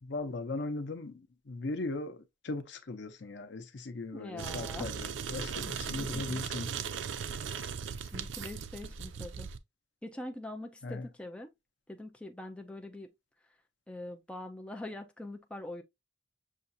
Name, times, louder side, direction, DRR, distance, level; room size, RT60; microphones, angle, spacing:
voice 1, 0.0-6.7 7.5-7.6 10.8-11.1, left 2 dB, 70° left, 0.7 m, -38 dB
voice 2, 4.1-4.9 6.0-6.4 7.1-7.6 8.0-9.5 10.0-11.5 11.9-13.1 13.9-15.8, left 1 dB, 5° left, 0.4 m, -44 dB
sound 1, 4.4-9.6, right 6 dB, 90° right, 0.4 m, -38 dB
6.4 x 2.4 x 2.6 m
head